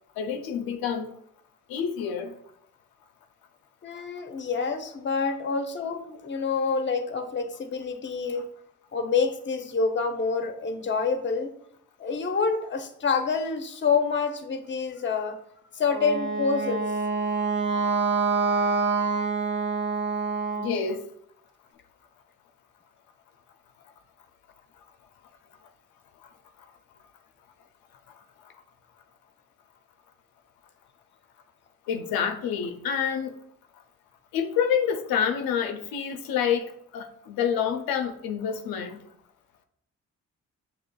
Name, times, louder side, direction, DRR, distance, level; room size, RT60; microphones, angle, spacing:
voice 1, 0.2-1.1 1.7-2.3 20.6-21.0 31.9-33.4 34.3-39.0, left 7 dB, 75° left, 0.5 m, -28 dB
voice 2, 3.8-8.5 8.9-11.5 12.0-15.4 15.7-16.9, left 5 dB, 30° left, 0.7 m, -27 dB
Wind instrument woodwind instrument, 15.8-20.8, right 4 dB, 30° right, 0.7 m, -26 dB
6.3 x 2.9 x 2.3 m
supercardioid pair, 50°, 35 cm